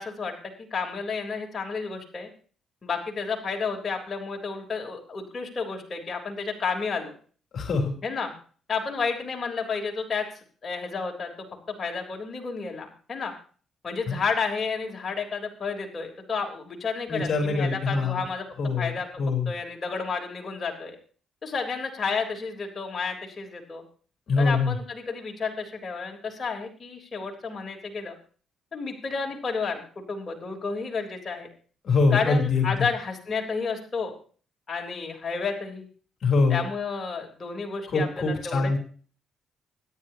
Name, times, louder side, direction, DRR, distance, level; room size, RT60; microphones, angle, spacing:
voice 1, 0.0-2.3 2.8-7.1 8.0-8.3 8.7-10.3 10.6-11.3 11.7-13.3 13.8-18.5 18.8-21.0 21.4-23.8 24.4-28.2 28.7-31.5 32.1-34.1 34.7-35.9 36.5-38.7, left 5 dB, 40° left, 1 dB, 3.7 m, -31 dB
voice 2, 7.5-7.9 14.1-14.2 17.1-18.2 18.6-18.9 19.2-19.5 24.3-24.8 31.8-32.6 36.2-36.6 37.9-38.8, left 4 dB, 55° left, 2 dB, 3.5 m, -23 dB
25.0 x 10.5 x 2.9 m, 0.42 s
cardioid pair, 90°, 0 cm